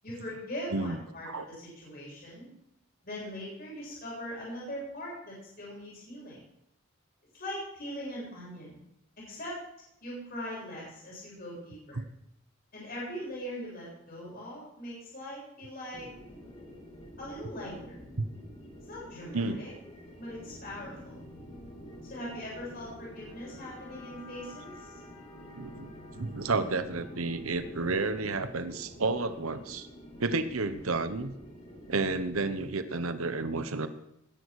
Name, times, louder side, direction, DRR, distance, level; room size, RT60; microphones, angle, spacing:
voice 1, 0.0-2.5 3.0-6.4 7.3-8.8 9.2-9.6 10.0-12.0 12.7-16.1 17.2-18.0 18.9-19.7 20.2-21.2 22.1-25.0, equal, 45° left, -5 dB, 7.4 m, -41 dB
sound 1, 15.9-32.6, equal, 30° left, 2.7 m, -48 dB
voice 2, 25.6-29.9 30.2-31.3 31.9-33.9, right 3 dB, 85° right, 10 dB, 1.1 m, -31 dB
20.0 x 11.0 x 4.8 m, 0.80 s
head